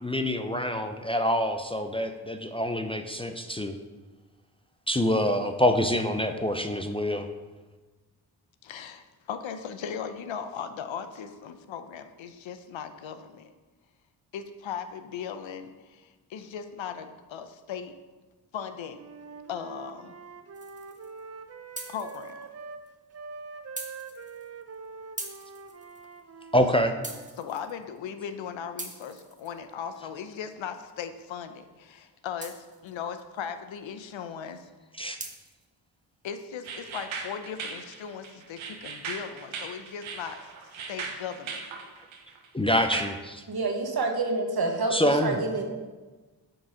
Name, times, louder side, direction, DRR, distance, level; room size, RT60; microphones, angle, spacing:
voice 1, 0.0-3.8 4.9-7.3 26.5-26.9 34.9-35.2 42.5-43.4 44.9-45.4, equal, 10° left, 6 dB, 0.5 m, -26 dB
voice 2, 8.6-13.5 14.3-17.9 18.5-19.0 19.5-20.1 21.9-22.3 27.4-34.7 36.2-40.5 40.9-41.6, left 7 dB, 75° left, 9 dB, 0.7 m, -38 dB
Wind instrument woodwind instrument, 18.9-22.8 23.1-27.4, right 5 dB, 35° right, 0.6 m, -44 dB
sound 1, 20.5-21.2 21.8-22.5 22.9-23.0 23.8-24.7 25.2-26.2 27.0-28.0 28.8-30.0 32.4-33.0 35.2-35.7, right 2 dB, 15° right, 1.1 m, -42 dB
sound 2, 36.6-43.0, right 5 dB, 90° right, 0.9 m, -38 dB
voice 3, 43.5-45.6, right 3 dB, 55° right, 3 dB, 1.3 m, -28 dB
7.8 x 3.9 x 4.9 m, 1.3 s
supercardioid pair, 40°, 46 cm